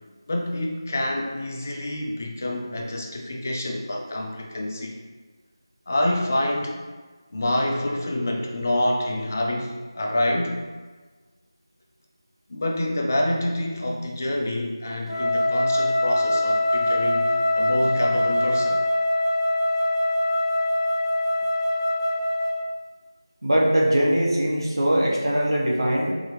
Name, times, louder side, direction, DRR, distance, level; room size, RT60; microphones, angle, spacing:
voice 1, 0.3-5.0 5.9-6.8 7.3-10.6 12.5-18.8, left 1 dB, 35° left, 1 dB, 0.4 m, -27 dB
Wind instrument woodwind instrument, 15.1-22.7, left 1 dB, 85° left, 0.8 m, -23 dB
voice 2, 23.4-26.1, right 1 dB, 65° right, -3 dB, 1.1 m, -21 dB
4.1 x 3.5 x 3.2 m, 1.4 s
figure-of-eight pair, 165°, 2 cm